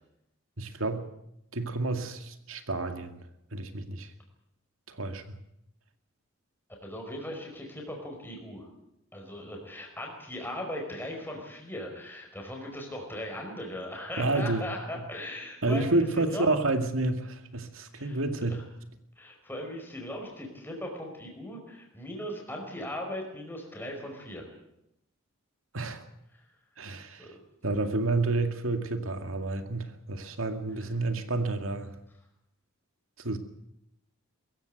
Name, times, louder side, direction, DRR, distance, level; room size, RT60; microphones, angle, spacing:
voice 1, 0.6-1.1 1.5-3.2 3.5-4.1 4.9-5.2 14.2-14.7 14.9-15.0 15.6-18.6 25.7-26.1 26.8-27.3 27.6-31.9 33.2-33.4, right 2 dB, 80° right, 8 dB, 2.2 m, -29 dB
voice 2, 6.8-8.7 9.1-16.6 17.9-18.2 18.5-18.6 19.2-24.5 27.2-27.4 30.8-30.9, left 1 dB, 10° left, 1 dB, 4.9 m, -38 dB
22.5 x 15.0 x 9.3 m, 0.81 s
head